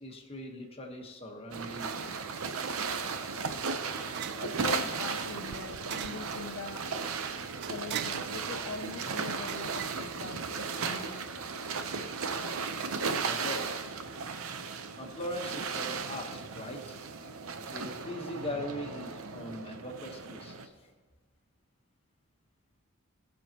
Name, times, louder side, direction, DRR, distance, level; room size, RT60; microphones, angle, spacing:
voice 1, 0.0-2.1 13.2-13.8 14.7-17.0 17.7-20.8, left 1 dB, 25° left, 2 dB, 1.2 m, -40 dB
sound 1, 1.5-20.7, right 5 dB, 75° right, 0.7 m, -36 dB
sound 2, 2.6-10.9, right 9 dB, 50° right, 0.3 m, -44 dB
voice 2, 4.4-6.9 7.7-11.3, left 4 dB, 65° left, 5 dB, 0.5 m, -42 dB
18.0 x 6.4 x 2.9 m, 1.5 s
head